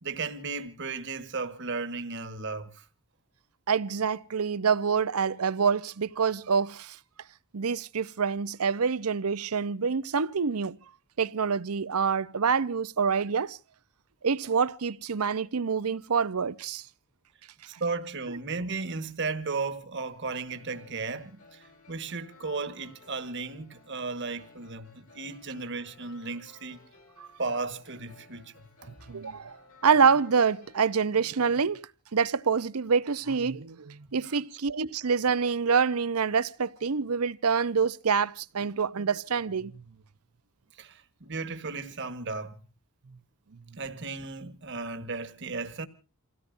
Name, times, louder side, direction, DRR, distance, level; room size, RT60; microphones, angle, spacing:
voice 1, 0.0-2.8 17.7-26.8 27.4-28.5 34.2-34.4 40.8-42.6 43.8-45.9, right 4 dB, 55° right, 1.5 m, -35 dB
voice 2, 3.7-7.0 7.5-10.8 11.2-13.6 14.2-16.9 18.3-18.4 27.2-27.3 29.1-29.6 29.8-31.8 32.1-39.8 43.7-43.8, right 6 dB, 80° right, 0.7 m, -26 dB
sound 1, 20.0-31.1, left 3 dB, 65° left, 4.7 m, -57 dB
28.5 x 17.0 x 2.6 m
head